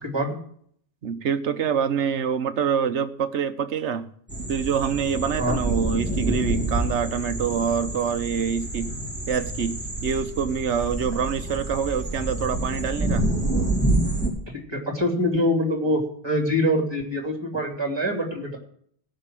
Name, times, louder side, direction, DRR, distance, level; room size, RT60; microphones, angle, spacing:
voice 1, 0.0-0.4 5.4-5.6 14.5-18.6, equal, 20° right, 3.0 m, -25 dB
voice 2, 1.0-4.1 4.5-8.9 9.3-13.3, right 7 dB, 80° right, 1.2 m, -26 dB
sound 1, 4.3-14.3, right 2 dB, 10° left, 2.9 m, -27 dB
17.0 x 6.0 x 7.6 m
omnidirectional pair, 1.2 m